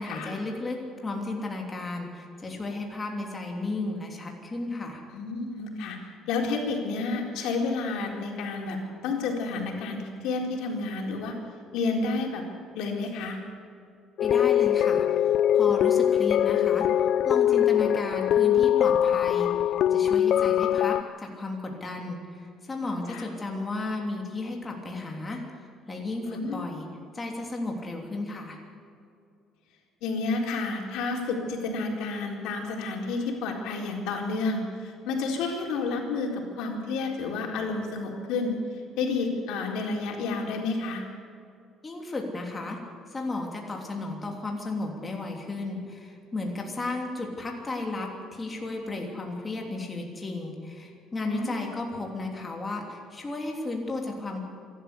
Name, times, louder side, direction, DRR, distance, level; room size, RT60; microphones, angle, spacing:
voice 1, 0.0-5.0 14.2-16.9 17.2-25.4 25.9-26.9 27.1-28.6 41.8-42.8 43.1-54.4, left 2 dB, 15° left, 0 dB, 3.0 m, -34 dB
voice 2, 5.1-6.0 6.3-11.4 11.7-12.4 12.8-13.4 23.1-23.2 26.2-26.6 30.0-41.1 51.3-51.7, left 3 dB, 80° left, 0 dB, 4.1 m, -30 dB
sound 1, 14.2-21.0, left 10 dB, 50° left, 0.4 m, -22 dB
26.5 x 12.5 x 8.4 m, 2.4 s
cardioid pair, 170°, 0 cm